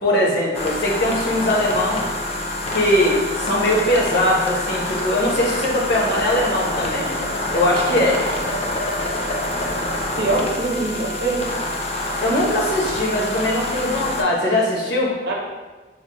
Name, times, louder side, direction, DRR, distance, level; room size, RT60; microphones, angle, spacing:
voice 1, 0.0-2.1 2.7-7.2 7.5-8.2 12.2-15.1, left 1 dB, 65° left, -2 dB, 0.8 m, -20 dB
sound 1, 0.5-14.2, left 1 dB, 35° left, 0.4 m, -26 dB
voice 2, 10.2-11.4 15.2-15.3, right 2 dB, 65° right, -1 dB, 0.7 m, -23 dB
4.8 x 2.1 x 2.9 m, 1.2 s
head